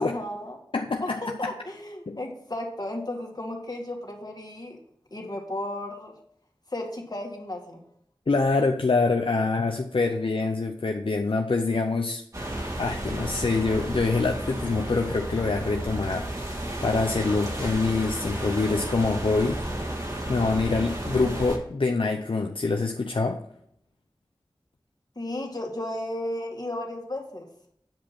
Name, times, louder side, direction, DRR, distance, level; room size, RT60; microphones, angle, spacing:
voice 1, 0.0-0.6 1.0-4.8 5.1-6.1 6.7-7.8 25.2-27.5, left 1 dB, 45° left, 1 dB, 2.1 m, -34 dB
voice 2, 0.7-1.2 2.1-2.2 8.3-12.2 12.7-19.6 20.3-23.4, left 3 dB, 75° left, 3 dB, 0.6 m, -25 dB
sound 1, 12.3-21.6, right 1 dB, 35° right, 1.9 m, -32 dB
8.9 x 5.1 x 6.0 m, 0.71 s
wide cardioid pair, 55°, 9 cm